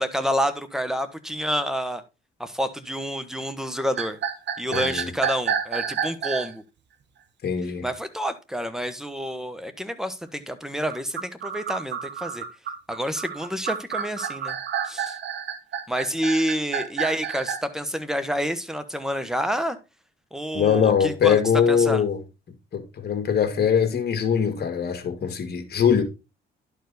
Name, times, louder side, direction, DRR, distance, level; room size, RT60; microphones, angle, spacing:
voice 1, 0.0-2.0 2.4-4.2 4.6-6.6 7.8-12.4 12.9-14.6 14.8-15.2 15.9-19.8 20.3-21.4 21.7-22.0, equal, ahead, 1.2 m, -28 dB
sound 1, 4.0-6.5 10.9-17.6, right 8 dB, 60° right, 1.3 m, -29 dB
voice 2, 4.7-5.1 7.4-7.9 20.5-22.2 22.7-26.0, left 7 dB, 55° left, 2.0 m, -22 dB
11.0 x 4.6 x 3.9 m
cardioid pair, 90°, 20 cm